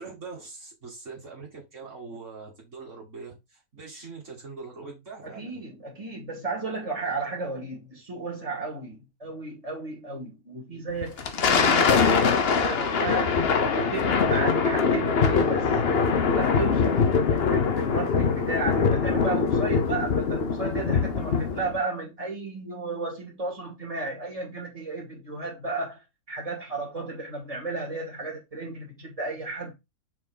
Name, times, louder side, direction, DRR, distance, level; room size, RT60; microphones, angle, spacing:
voice 1, 0.0-5.6, right 4 dB, 55° right, 2.7 m, -42 dB
voice 2, 5.2-13.3 13.8-15.7 16.2-26.0 26.3-29.7, right 3 dB, 25° right, 2.7 m, -34 dB
Thunder, 11.0-21.8, left 5 dB, 50° left, 0.9 m, -23 dB
6.3 x 4.6 x 3.8 m
omnidirectional pair, 1.5 m